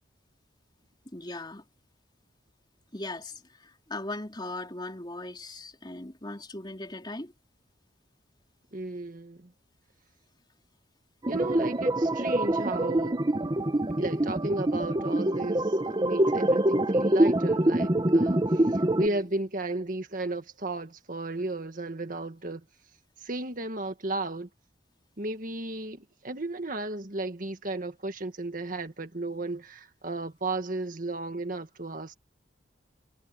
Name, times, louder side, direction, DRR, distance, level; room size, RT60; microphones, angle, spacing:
voice 1, 1.1-1.6 2.9-7.3 19.0-19.3, left 2 dB, 25° left, 3.7 m, -39 dB
voice 2, 8.7-9.5 11.3-13.2 14.0-22.6 23.2-24.5 25.2-32.1, right 2 dB, 45° right, 1.7 m, -34 dB
sound 1, 11.2-19.1, right 1 dB, 25° right, 0.9 m, -25 dB
head